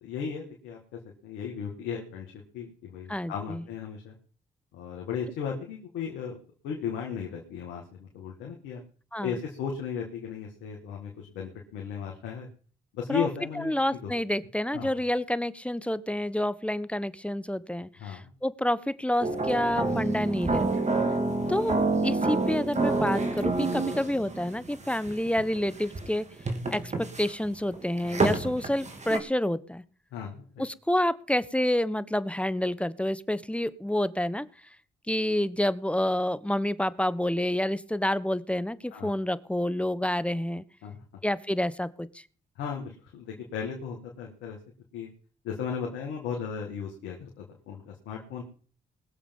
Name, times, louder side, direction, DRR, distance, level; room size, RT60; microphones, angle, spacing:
voice 1, 0.0-4.2 4.7-6.4 6.6-8.8 9.2-12.5 12.9-14.1 14.7-15.0 18.0-18.3 21.3-21.5 30.1-30.6 38.9-39.1 40.8-41.0 42.6-44.6 44.9-45.1 45.4-48.4, left 7 dB, 80° left, 0 dB, 2.0 m, -36 dB
voice 2, 3.1-3.6 9.1-9.3 13.1-13.3 13.6-20.8 21.5-26.3 26.7-26.9 27.2-29.8 30.6-34.5 35.1-40.6 41.2-42.1, left 1 dB, 5° left, 16 dB, 1.0 m, -28 dB
sound 1, 19.2-29.2, right 3 dB, 40° right, 3.0 m, -28 dB
20.0 x 7.4 x 5.4 m, 0.42 s
hypercardioid pair, 45°, 19 cm